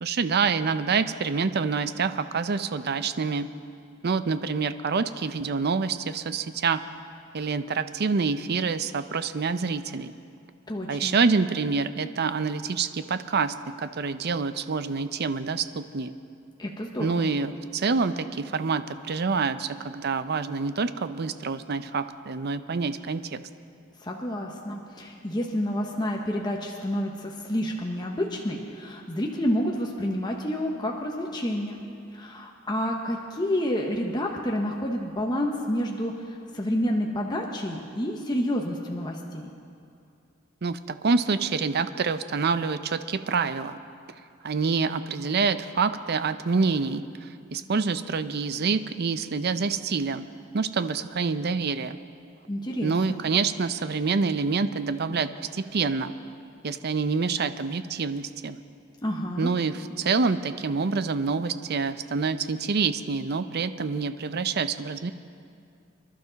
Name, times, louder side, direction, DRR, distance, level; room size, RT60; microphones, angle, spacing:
voice 1, 0.0-3.5 4.0-6.8 7.3-10.1 10.9-16.1 17.0-23.4 40.6-43.8 44.4-50.3 50.5-52.0 52.8-56.1 56.6-58.6 59.4-65.1, right 4 dB, 55° right, 12 dB, 0.5 m, -27 dB
voice 2, 10.7-11.2 16.6-17.3 24.0-31.8 32.1-39.5 52.5-53.2 59.0-59.5, equal, 20° left, 0 dB, 1.0 m, -29 dB
26.0 x 11.5 x 4.0 m, 2.4 s
head